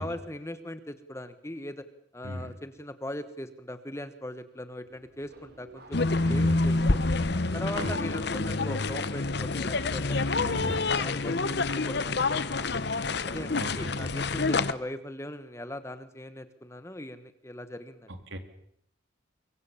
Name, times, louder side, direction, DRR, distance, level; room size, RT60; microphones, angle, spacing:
voice 1, 0.0-1.9 2.1-7.1 7.5-12.8 13.3-18.1, left 1 dB, 15° left, 11 dB, 1.2 m, -40 dB
Subway metro underground, 4.8-10.5, right 1 dB, 50° right, 4.8 m, -53 dB
sound 1, 5.9-14.7, left 3 dB, 55° left, 0.9 m, -27 dB
voice 2, 6.3-6.8 7.7-8.1 10.4-10.9 13.5-14.1 18.1-18.4, equal, 70° right, 7 dB, 3.1 m, -36 dB
24.0 x 23.0 x 7.1 m, 0.69 s
head